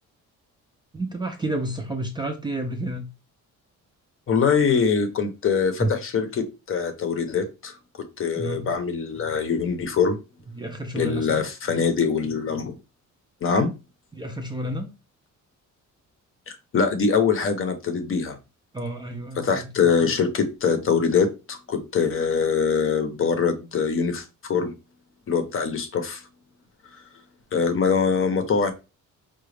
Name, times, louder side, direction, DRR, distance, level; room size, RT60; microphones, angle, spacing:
voice 1, 0.9-3.1 5.8-5.9 8.4-8.7 10.5-11.4 14.1-14.9 18.7-19.7, right 1 dB, 15° right, 0.4 m, -30 dB
voice 2, 4.3-7.8 8.2-10.2 10.9-12.8 13.4-13.7 16.5-18.4 19.4-24.7 25.3-26.2 27.5-28.7, left 5 dB, 45° left, 0.7 m, -23 dB
4.9 x 2.2 x 3.2 m
cardioid pair, 155°, 31 cm